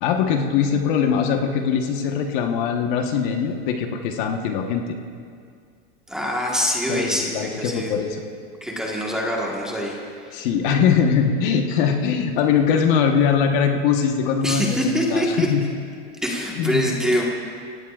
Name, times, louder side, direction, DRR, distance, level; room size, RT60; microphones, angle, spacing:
voice 1, 0.0-4.8 6.9-8.2 10.3-15.7 16.6-16.9, left 7 dB, 55° left, 3 dB, 1.3 m, -21 dB
voice 2, 6.1-7.9 8.6-10.3 14.4-15.5 16.2-17.2, equal, ahead, -3 dB, 1.5 m, -24 dB
25.0 x 17.0 x 2.5 m, 2.2 s
supercardioid pair, 160°, 30 cm